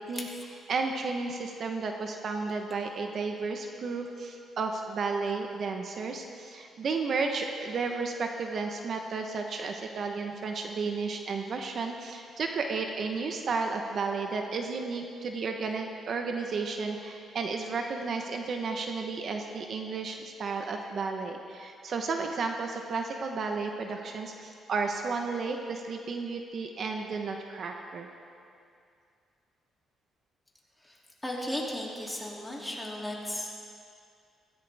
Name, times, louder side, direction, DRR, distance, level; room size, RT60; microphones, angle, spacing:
voice 1, 0.1-0.4 30.8-30.9 31.2-33.5, left 1 dB, 5° left, -3 dB, 2.8 m, -35 dB
voice 2, 0.7-28.1, right 4 dB, 55° right, 3 dB, 1.1 m, -33 dB
16.0 x 15.5 x 3.5 m, 2.4 s
cardioid pair, 90°, 0 cm